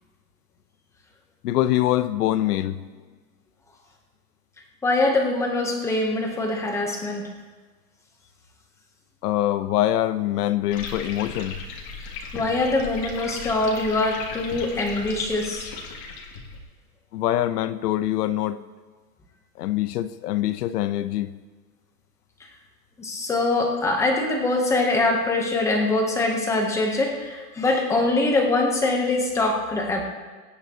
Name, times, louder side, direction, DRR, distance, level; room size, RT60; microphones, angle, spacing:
voice 1, 1.4-2.8 9.2-11.6 17.1-18.6 19.6-21.3, left 13 dB, 75° left, 13 dB, 0.9 m, -24 dB
voice 2, 4.8-7.3 12.3-15.7 23.0-30.0, left 2 dB, 5° left, 1 dB, 0.8 m, -23 dB
sound 1, 10.7-16.6, left 4 dB, 40° left, 2.5 m, -36 dB
23.0 x 10.0 x 2.9 m, 1.4 s
supercardioid pair, 175°, 47 cm